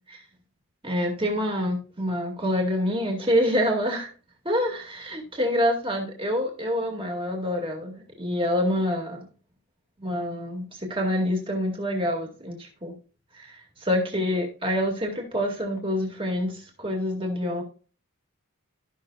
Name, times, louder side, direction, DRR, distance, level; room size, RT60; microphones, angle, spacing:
voice 1, 0.8-4.1 4.4-9.3 10.0-12.9 13.3-17.6, equal, 25° right, 1 dB, 2.3 m, -27 dB
14.0 x 6.1 x 2.4 m, 0.38 s
head